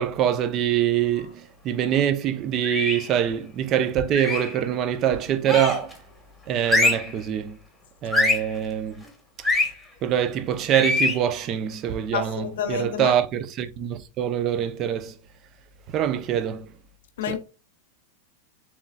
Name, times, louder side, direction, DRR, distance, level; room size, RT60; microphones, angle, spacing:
voice 1, 0.0-6.0 6.5-7.6 8.0-9.0 10.0-15.1 15.9-16.7 17.3-17.4, right 10 dB, 35° right, 0.5 m, -24 dB
sound 1, 2.6-3.1 4.1-4.6 5.4-5.9 6.6-7.1 8.1-8.5 9.4-9.7 10.7-11.2, left 2 dB, ahead, 1.4 m, -23 dB
voice 2, 12.1-13.1 17.2-17.4, left 7 dB, 60° left, 0.5 m, -29 dB
6.9 x 3.1 x 2.3 m
figure-of-eight pair, 90°, 0 cm